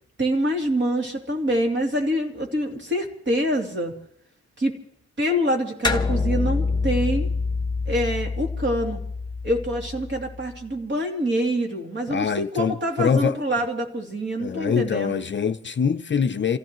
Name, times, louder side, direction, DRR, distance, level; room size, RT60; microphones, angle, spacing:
voice 1, 0.2-4.0 4.6-4.7 5.2-7.3 7.9-9.0 9.4-15.2, equal, 40° right, 3.0 m, -25 dB
sound 1, 5.8-10.6, left 4 dB, 15° left, 1.2 m, -26 dB
voice 2, 12.1-13.4 14.4-16.6, left 6 dB, 40° left, 0.6 m, -24 dB
28.5 x 16.0 x 3.1 m
wide cardioid pair, 150°, 30 cm